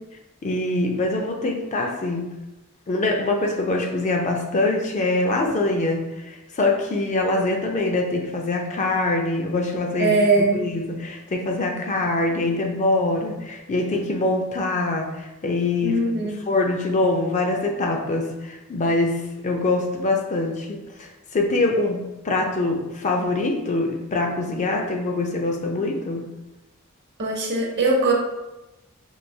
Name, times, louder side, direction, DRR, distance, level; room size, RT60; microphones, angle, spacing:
voice 1, 0.4-2.3 2.9-10.1 10.5-16.0 16.5-26.2, left 2 dB, 35° left, 2 dB, 0.4 m, -24 dB
voice 2, 10.0-10.7 15.8-16.3 27.2-28.1, right 2 dB, 50° right, 0 dB, 0.7 m, -20 dB
4.5 x 2.6 x 2.7 m, 1.0 s
head